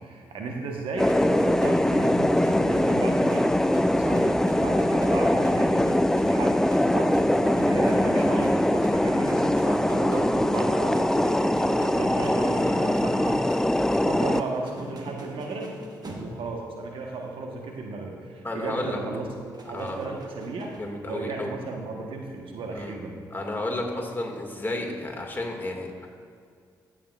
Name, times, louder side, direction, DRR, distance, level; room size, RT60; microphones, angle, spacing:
voice 1, 0.0-5.8 6.2-13.5 14.0-15.7 16.2-19.3 19.7-20.7 21.1-23.2, right 3 dB, 65° right, 1 dB, 1.1 m, -34 dB
sound 1, 1.0-14.4, left 1 dB, 5° left, 0.3 m, -22 dB
sound 2, 1.1-16.7 17.0-17.3 19.5-20.8, right 1 dB, 45° right, 1.3 m, -40 dB
voice 2, 18.4-19.0 19.7-20.0 20.8-21.5 22.7-22.9 23.3-26.1, left 2 dB, 20° left, 0 dB, 1.9 m, -32 dB
15.5 x 6.2 x 2.4 m, 2.2 s
hypercardioid pair, 40°, 10 cm